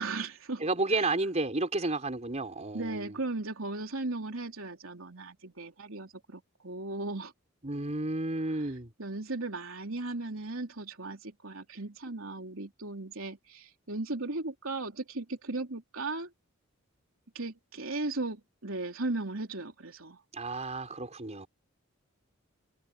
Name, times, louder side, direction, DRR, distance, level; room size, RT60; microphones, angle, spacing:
voice 1, 0.0-0.6 0.9-1.1 2.7-7.3 8.5-8.7 9.0-16.3 17.3-20.2, right 2 dB, 80° right, 3.4 m, -36 dB
voice 2, 0.6-3.1 7.6-8.9 20.3-21.5, right 2 dB, 35° right, 4.3 m, -31 dB
head